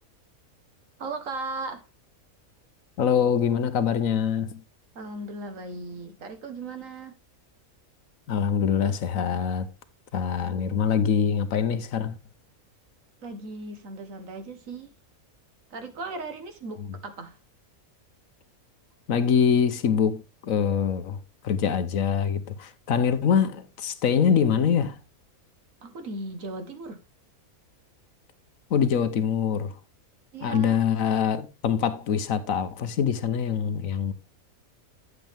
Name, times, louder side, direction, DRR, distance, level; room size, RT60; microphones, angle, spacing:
voice 1, 1.0-1.8 4.9-7.1 10.4-10.9 13.2-14.9 15.7-17.3 25.8-27.0 30.3-30.8, right 3 dB, 65° right, 1.6 m, -37 dB
voice 2, 3.0-4.6 8.3-9.7 10.1-12.2 19.1-21.2 21.4-25.0 28.7-29.8 30.4-34.1, left 7 dB, 70° left, 1.3 m, -24 dB
9.2 x 8.2 x 3.4 m
omnidirectional pair, 1.5 m